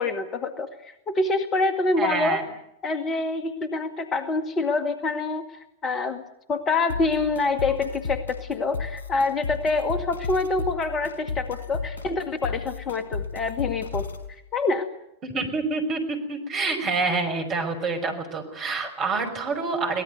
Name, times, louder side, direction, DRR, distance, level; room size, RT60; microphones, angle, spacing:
voice 1, 0.0-2.4 2.8-5.4 5.8-6.2 6.5-14.1 14.5-14.9, left 3 dB, 25° left, 8 dB, 1.9 m, -26 dB
voice 2, 2.0-2.4 15.2-20.0, right 3 dB, 35° right, 5 dB, 5.6 m, -27 dB
sound 1, 6.9-14.3, left 5 dB, 85° right, 4.9 m, -34 dB
23.5 x 18.5 x 9.5 m, 0.78 s
figure-of-eight pair, 90°, 0 cm